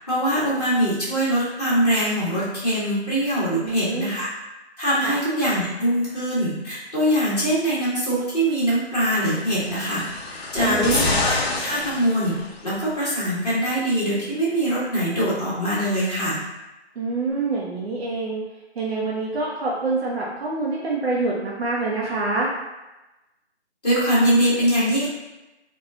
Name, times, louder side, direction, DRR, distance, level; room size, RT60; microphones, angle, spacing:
voice 1, 0.1-4.3 4.8-10.0 10.5-12.4 12.6-16.4 23.8-25.1, right 1 dB, 35° left, -9 dB, 1.0 m, -22 dB
voice 2, 3.6-4.1 5.0-5.2 10.6-11.0 17.0-18.4 18.8-22.5, right 3 dB, 60° right, -4 dB, 0.6 m, -26 dB
sound 1, 9.4-12.8 13.7-13.8, left 2 dB, 65° left, 0.5 m, -27 dB
2.9 x 2.2 x 2.3 m, 1.0 s
figure-of-eight pair, 170°, 34 cm